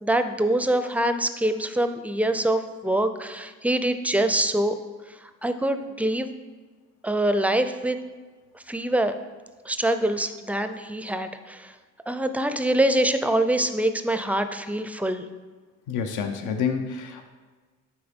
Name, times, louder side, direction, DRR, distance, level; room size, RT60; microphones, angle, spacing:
voice 1, 0.0-4.8 5.4-6.3 7.0-8.0 8.5-9.1 9.7-11.7 12.1-15.3, right 1 dB, 5° right, 9 dB, 0.4 m, -24 dB
voice 2, 15.9-17.3, left 6 dB, 80° left, 6 dB, 0.7 m, -28 dB
8.7 x 4.3 x 3.6 m, 1.4 s
cardioid pair, 90°, 30 cm